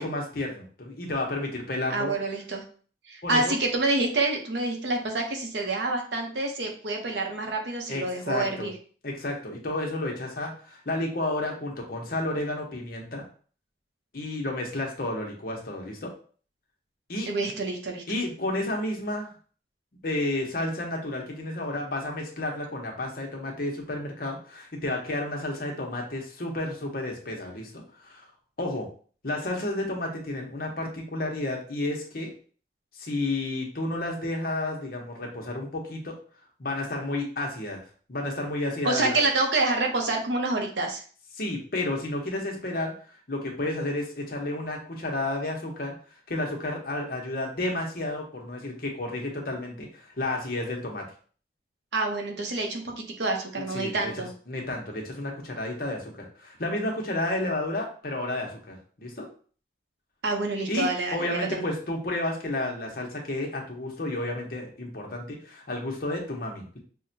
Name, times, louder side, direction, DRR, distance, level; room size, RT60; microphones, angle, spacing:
voice 1, 0.0-2.1 3.2-3.5 7.9-8.7 9.0-13.3 14.1-16.1 17.1-17.3 18.1-19.3 20.0-28.3 28.6-28.9 29.2-32.3 32.9-36.2 36.6-37.8 38.1-39.2 41.3-42.9 43.3-45.9 46.3-51.1 53.7-59.3 60.7-66.8, left 2 dB, 55° left, 0 dB, 0.9 m, -31 dB
voice 2, 1.9-2.6 3.1-8.7 17.3-18.0 38.8-41.0 51.9-54.3 60.2-61.6, right 2 dB, 85° right, 2 dB, 0.8 m, -27 dB
5.5 x 2.2 x 2.7 m, 0.43 s
head